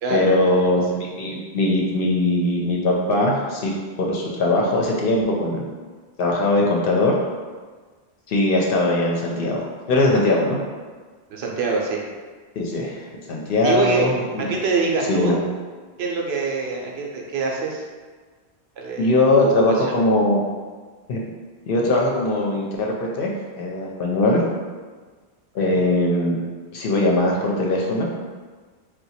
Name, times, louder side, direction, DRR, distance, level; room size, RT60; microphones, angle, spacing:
voice 1, 0.1-5.6 6.2-7.1 8.3-10.6 12.6-13.0 13.3-14.5 15.1-15.3 19.0-20.4 21.1-21.2 21.7-23.3 23.6-24.4 25.5-26.4 26.7-28.1, left 2 dB, 65° left, -2 dB, 0.7 m, -20 dB
voice 2, 11.3-12.0 13.6-14.1 14.4-15.4 16.0-17.8 18.8-19.1 19.4-19.9 25.6-25.8, right 4 dB, 75° right, -1 dB, 0.8 m, -25 dB
2.8 x 2.2 x 4.1 m, 1.4 s
omnidirectional pair, 1.1 m